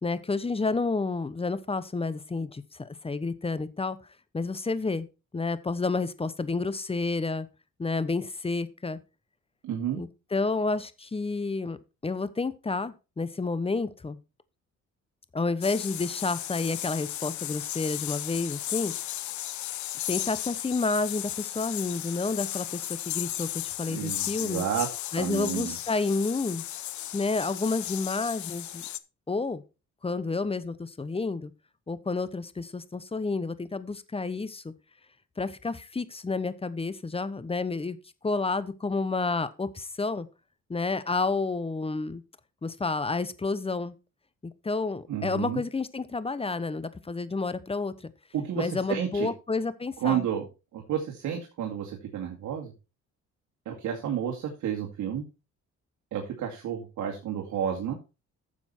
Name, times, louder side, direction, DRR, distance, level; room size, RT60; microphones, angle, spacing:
voice 1, 0.0-4.0 4.3-5.1 5.3-7.5 7.8-9.0 9.9-11.8 12.0-14.2 15.3-18.9 20.1-24.6 25.1-26.6 27.1-28.8 29.3-29.6 30.0-31.5 31.9-34.7 35.4-38.0 38.2-40.3 40.7-42.2 42.6-43.9 44.4-48.1 48.6-50.2, left 3 dB, 20° left, 15 dB, 1.0 m, -30 dB
voice 2, 9.6-10.0 23.9-24.9 25.2-25.8 45.1-45.6 48.3-49.3 50.0-50.5 50.7-52.7 53.7-55.2 56.1-58.0, right 9 dB, 75° right, 0 dB, 2.4 m, -31 dB
sound 1, 15.6-29.0, left 14 dB, 70° left, 0.8 m, -35 dB
10.0 x 7.1 x 4.5 m, 0.30 s
cardioid pair, 90°, 30 cm